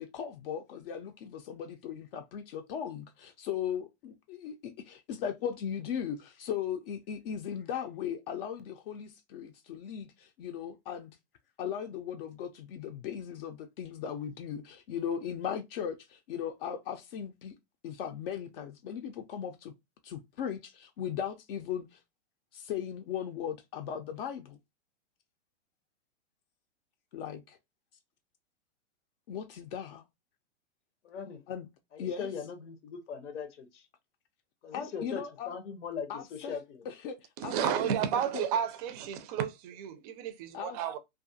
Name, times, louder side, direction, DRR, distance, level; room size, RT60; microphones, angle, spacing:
voice 1, 0.0-11.1 11.6-17.6 17.8-19.7 20.0-22.0 22.5-24.6 27.1-27.6 29.3-30.0 31.5-31.7 32.0-32.3 34.7-35.6 36.1-36.5 36.9-38.5 40.5-40.8, left 8 dB, 55° left, 0.5 m, -38 dB
voice 2, 31.0-31.4 31.9-33.9 34.6-36.9, left 6 dB, 90° left, 0.8 m, -40 dB
voice 3, 37.4-41.0, right 9 dB, 35° right, 0.4 m, -32 dB
2.4 x 2.3 x 2.6 m
hypercardioid pair, 135°, 35 cm